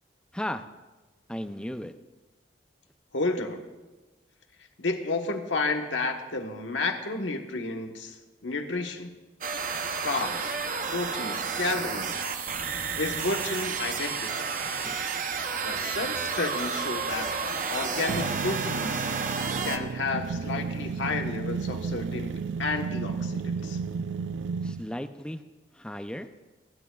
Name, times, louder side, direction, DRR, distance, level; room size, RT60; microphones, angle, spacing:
voice 1, 0.3-0.6 1.3-1.9 14.9-15.0 24.6-25.4 25.7-26.3, left 1 dB, 5° left, 9 dB, 0.5 m, -35 dB
voice 2, 3.1-3.7 4.8-9.1 10.0-10.6 10.9-12.3 13.0-14.5 15.6-17.4 17.7-19.1 19.6-22.3 22.6-23.8, left 3 dB, 90° left, 4 dB, 1.3 m, -31 dB
sound 1, 9.4-19.8, right 5 dB, 45° right, 0.8 m, -31 dB
sound 2, 18.1-24.9, right 5 dB, 80° right, 0.4 m, -33 dB
27.5 x 11.5 x 2.4 m, 1.2 s
head